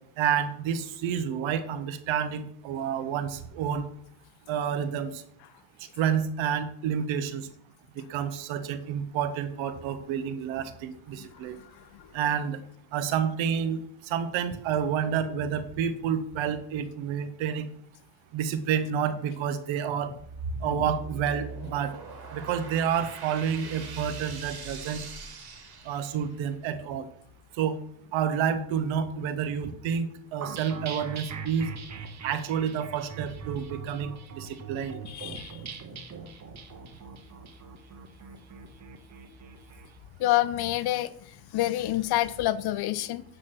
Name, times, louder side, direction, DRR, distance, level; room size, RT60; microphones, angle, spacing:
voice 1, 0.2-3.8 4.5-5.2 6.0-7.5 8.0-11.6 12.1-12.6 12.9-17.7 18.3-20.1 20.6-22.0 22.3-25.0 25.8-27.1 27.6-27.8 28.1-31.7 32.2-35.0, right 8 dB, 85° right, 11 dB, 1.1 m, -29 dB
sound 1, 20.2-26.5, right 3 dB, 55° right, 2.4 m, -40 dB
sound 2, 30.4-39.9, right 5 dB, 35° right, 1.1 m, -42 dB
voice 2, 35.1-35.6 40.2-41.1 41.5-43.2, left 15 dB, 55° left, 16 dB, 0.6 m, -27 dB
9.1 x 4.1 x 6.0 m, 0.68 s
cardioid pair, 130°, 46 cm